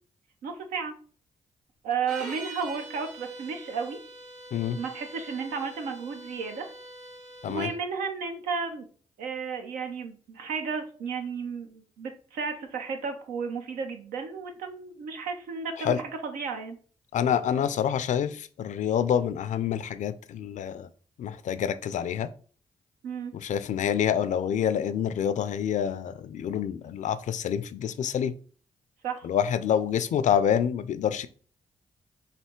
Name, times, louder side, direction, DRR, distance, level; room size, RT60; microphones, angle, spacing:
voice 1, 0.4-0.9 1.8-4.0 4.7-6.7 7.4-8.9 9.2-16.0 16.2-16.8 23.0-23.3 29.0-29.2, right 5 dB, 90° right, 0.7 m, -33 dB
sound 1, 2.0-7.8, right 2 dB, 70° right, 1.4 m, -44 dB
voice 2, 17.1-20.9 21.2-22.3 23.4-28.4 29.2-31.3, left 9 dB, 65° left, 0.4 m, -27 dB
3.3 x 2.7 x 4.4 m
supercardioid pair, 50°, 14 cm